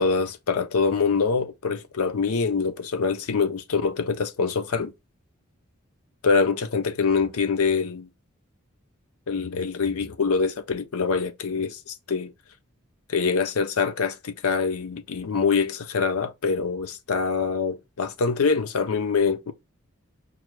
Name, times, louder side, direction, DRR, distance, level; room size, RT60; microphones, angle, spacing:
voice 1, 0.0-4.9 6.2-8.1 9.3-12.3 13.1-19.5, left 5 dB, 80° left, 0.5 m, -24 dB
4.9 x 2.2 x 3.0 m
head